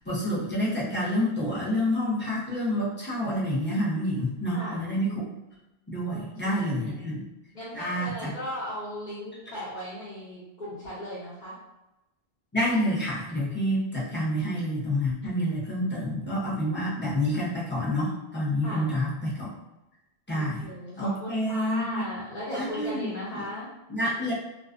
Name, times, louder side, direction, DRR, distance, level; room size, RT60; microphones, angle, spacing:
voice 1, 0.1-5.3 5.9-7.2 7.7-8.3 12.5-19.5 20.3-20.7 21.0-22.0 22.5-23.4 23.9-24.3, equal, 15° left, -8 dB, 0.5 m, -28 dB
voice 2, 4.5-4.9 6.1-6.6 6.8-7.1 7.5-11.6 18.6-19.0 20.3-23.7, equal, 50° left, -10 dB, 0.8 m, -37 dB
2.3 x 2.3 x 2.4 m, 0.98 s
omnidirectional pair, 1.1 m